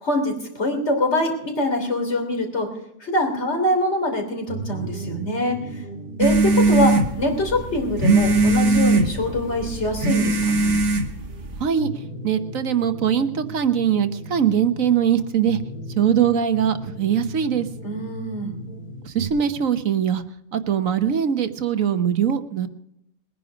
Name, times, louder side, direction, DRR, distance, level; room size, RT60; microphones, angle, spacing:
voice 1, 0.0-2.7 3.0-5.8 6.2-10.8 17.8-18.5, left 1 dB, 50° left, 3 dB, 3.5 m, -24 dB
sound 1, 4.5-19.3, right 1 dB, 30° left, 3.0 m, -37 dB
sound 2, 6.2-11.7, right 2 dB, 90° right, 2.2 m, -20 dB
voice 2, 11.6-11.9 12.2-15.6 16.0-17.7 19.0-20.2 20.5-22.7, right 8 dB, 65° right, 10 dB, 1.4 m, -21 dB
21.5 x 10.5 x 5.0 m, 0.81 s
omnidirectional pair, 1.5 m